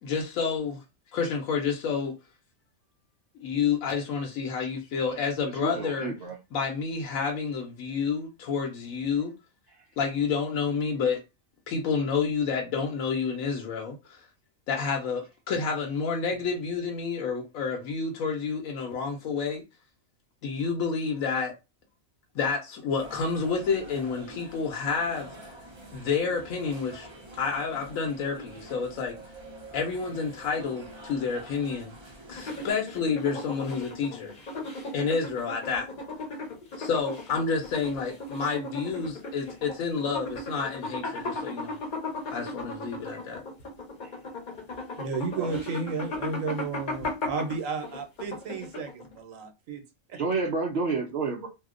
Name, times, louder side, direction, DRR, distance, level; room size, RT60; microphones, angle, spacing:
voice 1, 0.0-0.8 1.1-2.1 3.3-6.1 6.5-9.3 10.0-11.2 11.7-14.2 14.7-19.6 20.4-21.5 22.3-25.6 25.9-27.1 27.4-29.2 29.7-31.9 32.3-34.4 34.9-35.9 36.8-41.8 42.3-43.4, left 5 dB, 80° left, 1.1 m, -29 dB
voice 2, 5.6-6.4 44.0-44.2 45.4-45.6 50.1-51.5, right 4 dB, 60° right, 0.8 m, -30 dB
sound 1, 23.0-32.7, right 2 dB, 35° right, 0.4 m, -46 dB
sound 2, 32.3-49.1, left 2 dB, 45° left, 0.8 m, -36 dB
voice 3, 45.0-49.8 50.1-50.2, right 4 dB, 80° right, 1.2 m, -33 dB
2.8 x 2.1 x 3.6 m
omnidirectional pair, 1.4 m